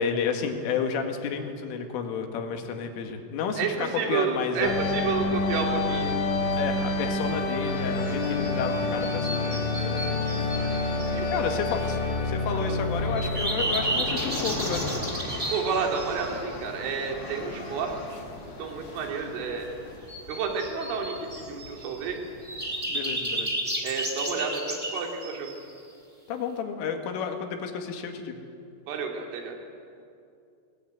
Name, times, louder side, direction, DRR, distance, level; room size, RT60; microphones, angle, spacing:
voice 1, 0.0-4.7 6.5-10.2 11.3-14.9 22.9-23.5 26.3-28.4, left 6 dB, 90° left, 4 dB, 4.6 m, -31 dB
voice 2, 3.6-6.3 11.1-11.5 12.7-12.8 15.5-18.2 18.6-19.7 20.3-22.2 23.8-25.5 28.9-29.6, right 5 dB, 80° right, 2 dB, 5.3 m, -30 dB
sound 1, 4.6-20.0, left 2 dB, 70° left, 4.9 m, -29 dB
sound 2, 8.0-8.5 9.0-11.1 13.2-16.4 20.1-22.0 22.4-25.8, right 1 dB, 10° right, 3.0 m, -32 dB
sound 3, 13.0-22.8, left 2 dB, 30° left, 1.4 m, -38 dB
23.5 x 19.5 x 9.5 m, 2.5 s
omnidirectional pair, 5.6 m